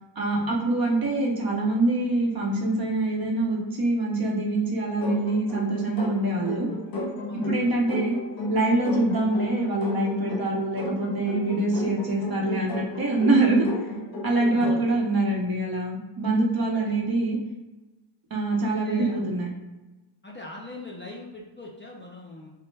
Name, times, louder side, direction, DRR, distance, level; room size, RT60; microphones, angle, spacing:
voice 1, 0.2-6.7 7.5-8.2 8.5-13.7 14.2-17.4 18.3-19.5, right 2 dB, 50° right, -1 dB, 0.8 m, -24 dB
sound 1, 5.0-15.0, left 2 dB, 50° left, 0.8 m, -33 dB
voice 2, 7.3-7.7 14.5-14.8 16.7-17.0 18.8-19.2 20.2-22.5, left 2 dB, 25° left, -3 dB, 0.4 m, -41 dB
3.1 x 2.0 x 3.2 m, 1.1 s
wide cardioid pair, 125°, 46 cm